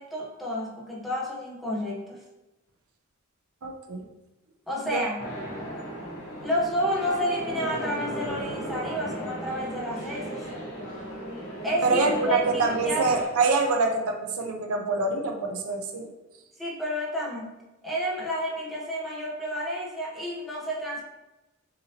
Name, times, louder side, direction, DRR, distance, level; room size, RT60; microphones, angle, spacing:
voice 1, 0.0-2.2 4.7-5.3 6.4-10.4 11.6-13.1 16.6-17.5 17.8-21.0, equal, ahead, -5 dB, 0.9 m, -30 dB
voice 2, 3.6-4.0 4.9-5.1 11.8-16.1, right 3 dB, 70° right, 3 dB, 0.6 m, -25 dB
sound 1, 5.2-13.2, equal, 80° left, 1.6 m, -35 dB
6.5 x 2.9 x 2.8 m, 1.0 s
head